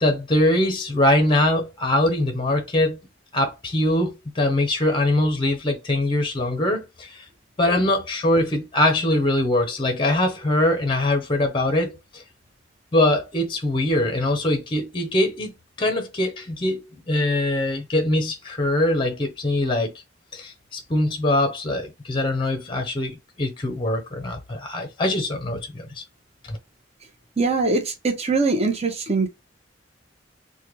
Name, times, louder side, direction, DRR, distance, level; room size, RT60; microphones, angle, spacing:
voice 1, 0.0-3.0 3.3-7.2 7.6-12.2 12.9-19.9 20.3-26.0 26.5-26.6, left 1 dB, 25° left, 0.6 m, -22 dB
voice 2, 27.4-29.3, right 3 dB, 35° right, 0.8 m, -23 dB
3.3 x 2.2 x 3.0 m
head